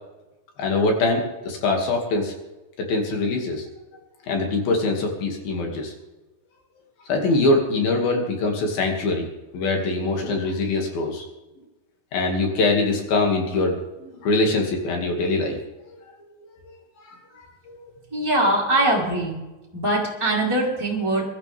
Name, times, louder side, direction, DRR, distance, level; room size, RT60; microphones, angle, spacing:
voice 1, 0.6-2.3 2.8-3.6 4.3-5.9 7.1-9.3 9.5-11.2 12.1-15.6 15.9-16.0 17.1-17.2 17.7-17.8, left 2 dB, 75° left, 2 dB, 4.2 m, -23 dB
voice 2, 18.1-19.4 19.7-21.2, right 1 dB, 5° right, -5 dB, 4.0 m, -22 dB
23.5 x 13.0 x 3.6 m, 1.1 s
omnidirectional pair, 4.3 m